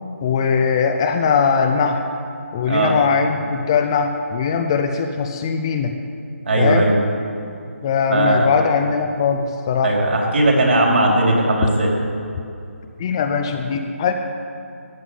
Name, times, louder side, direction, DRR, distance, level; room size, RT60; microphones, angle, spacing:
voice 1, 0.2-2.1 2.5-5.9 6.6-6.9 7.8-10.0 13.0-14.1, left 6 dB, 20° left, 5 dB, 0.5 m, -20 dB
voice 2, 6.5-7.0 8.1-8.5 9.8-11.9, right 1 dB, 55° right, -1 dB, 3.7 m, -17 dB
14.0 x 9.3 x 7.8 m, 2.5 s
figure-of-eight pair, 165°, 8 cm